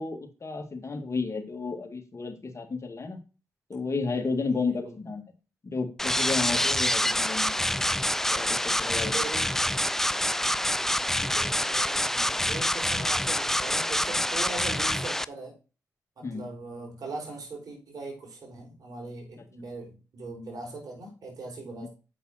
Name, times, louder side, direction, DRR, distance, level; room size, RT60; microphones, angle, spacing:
voice 1, 0.0-3.2 3.7-5.2 5.6-7.8 8.3-9.2 16.2-16.5 21.8-21.9, left 4 dB, 40° left, 4 dB, 2.1 m, -32 dB
voice 2, 4.4-4.9 9.0-9.4 11.2-15.5 16.2-21.9, right 3 dB, 60° right, 0 dB, 4.5 m, -40 dB
sound 1, 6.0-15.2, left 1 dB, 5° left, 0.4 m, -26 dB
7.7 x 5.4 x 4.3 m, 0.32 s
supercardioid pair, 40°, 7 cm